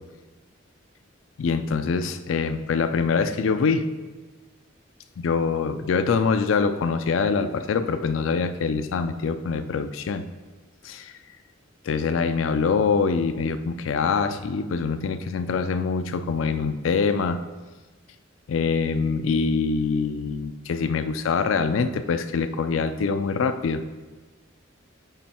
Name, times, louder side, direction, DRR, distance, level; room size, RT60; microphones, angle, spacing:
voice 1, 1.4-3.9 5.2-10.3 10.8-11.1 11.8-17.4 18.5-23.8, left 5 dB, 75° left, 11 dB, 0.4 m, -24 dB
8.9 x 3.1 x 4.3 m, 1.3 s
head